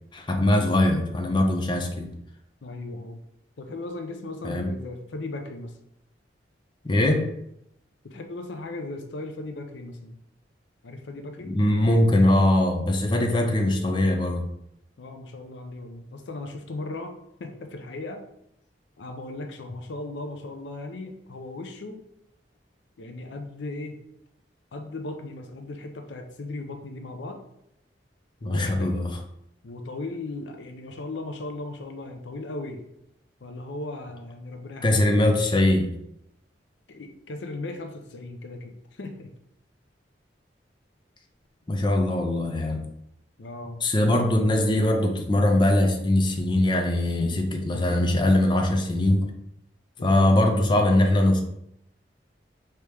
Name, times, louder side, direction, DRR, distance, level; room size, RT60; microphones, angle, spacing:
voice 1, 0.1-2.1 4.4-4.7 6.8-7.3 11.4-14.5 28.4-29.1 34.8-35.9 41.7-42.9 43.8-49.3 50.0-51.4, left 1 dB, 25° left, 3 dB, 0.5 m, -21 dB
voice 2, 2.6-3.2 3.6-5.8 8.0-10.2 10.8-11.6 15.0-18.2 19.0-22.0 23.0-24.0 24.7-27.4 28.4-29.0 29.6-32.8 33.4-35.1 36.9-39.3 43.4-43.8 50.0-50.3, left 2 dB, 80° left, 6 dB, 0.6 m, -37 dB
4.8 x 2.9 x 3.4 m, 0.79 s
head